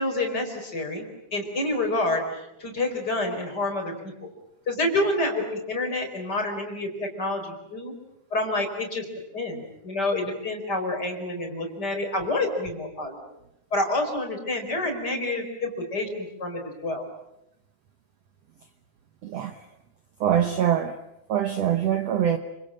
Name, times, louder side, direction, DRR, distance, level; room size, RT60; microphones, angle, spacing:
voice 1, 0.0-4.3 4.7-7.9 8.3-9.0 9.3-13.2 13.7-17.0, left 2 dB, 25° left, 5.0 m, -28 dB
voice 2, 19.2-19.6 20.2-21.0 21.3-22.4, right 10 dB, 75° right, 1.5 m, -24 dB
28.0 x 26.0 x 7.6 m
omnidirectional pair, 4.5 m